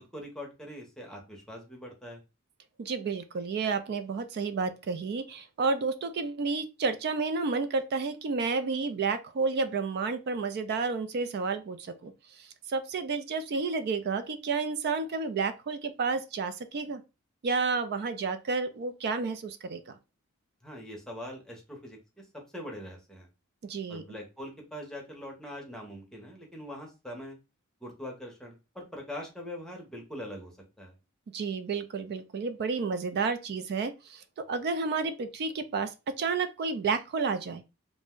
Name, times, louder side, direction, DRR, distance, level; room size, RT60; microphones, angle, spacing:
voice 1, 0.1-2.2 20.6-22.2 22.5-23.3 23.9-27.4 27.8-30.9, left 1 dB, 5° left, 0.7 m, -42 dB
voice 2, 2.8-17.0 17.4-20.0 23.6-24.0 31.3-37.6, right 4 dB, 50° right, 0.3 m, -31 dB
2.5 x 2.1 x 3.5 m
head